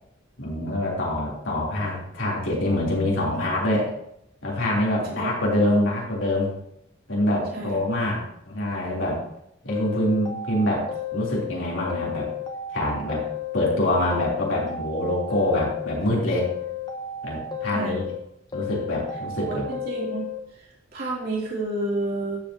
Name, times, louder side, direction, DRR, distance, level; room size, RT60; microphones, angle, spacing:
voice 1, 0.4-3.9 4.4-6.5 7.1-8.2 8.5-9.2 9.6-10.8 11.1-12.3 12.7-13.2 13.5-16.5 17.2-18.0 18.5-19.6, left 1 dB, 90° left, -4 dB, 3.5 m, -25 dB
sound 1, 9.7-11.6 11.9-13.8 14.1-16.0 16.3-18.2 18.5-20.4, left 7 dB, 25° left, 0.9 m, -33 dB
voice 2, 19.4-20.2 20.5-22.4, right 2 dB, 50° right, -4 dB, 3.1 m, -30 dB
12.0 x 7.9 x 2.9 m, 0.75 s
head